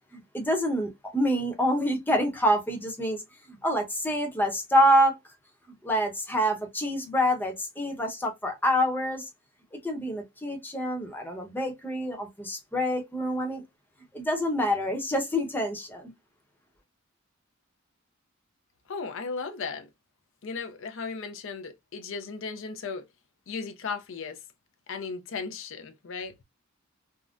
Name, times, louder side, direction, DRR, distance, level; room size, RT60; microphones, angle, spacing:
voice 1, 0.1-5.2 5.8-9.3 9.7-13.6 14.1-16.1, equal, 10° left, 0.8 m, -27 dB
voice 2, 18.9-19.9 20.4-23.1 23.5-24.4 24.9-26.3, left 5 dB, 65° left, 0.5 m, -36 dB
3.5 x 2.1 x 2.4 m
head